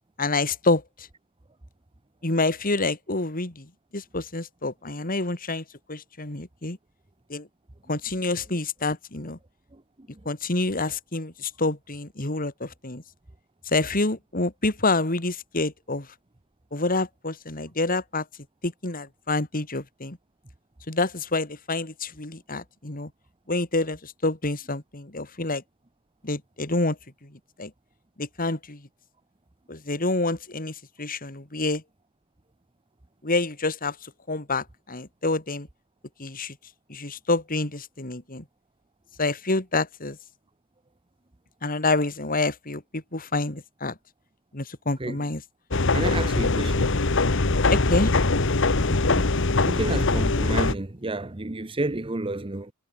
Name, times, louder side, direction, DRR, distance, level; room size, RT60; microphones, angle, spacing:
voice 1, 0.2-1.1 2.2-3.7 3.9-6.8 7.3-7.5 7.9-9.4 10.2-13.0 13.7-16.1 16.7-18.2 18.6-20.2 20.9-23.1 23.5-25.6 26.2-27.0 27.6-27.7 28.2-28.8 29.7-31.8 33.2-33.9 34.3-35.7 36.2-36.5 36.9-38.4 39.2-40.2 41.6-43.9 44.5-45.4 47.7-48.1, left 2 dB, 45° left, 3.0 m, -27 dB
sound 1, 45.7-50.7, left 3 dB, 65° left, 1.3 m, -22 dB
voice 2, 45.9-46.9 48.9-49.3 49.7-52.7, right 2 dB, 25° right, 1.0 m, -30 dB
head